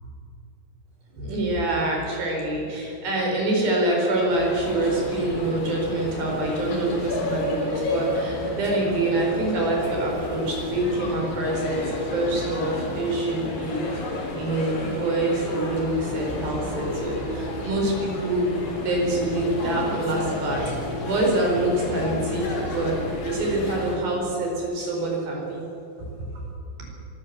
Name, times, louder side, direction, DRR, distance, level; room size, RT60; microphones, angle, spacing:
voice 1, 1.1-14.1 14.4-18.5 18.8-20.6 21.0-25.6, right 1 dB, 55° right, -1 dB, 6.4 m, -25 dB
sound 1, 4.3-24.0, left 1 dB, 65° left, 5.7 m, -31 dB
24.5 x 13.0 x 8.4 m, 2.9 s
omnidirectional pair, 5.3 m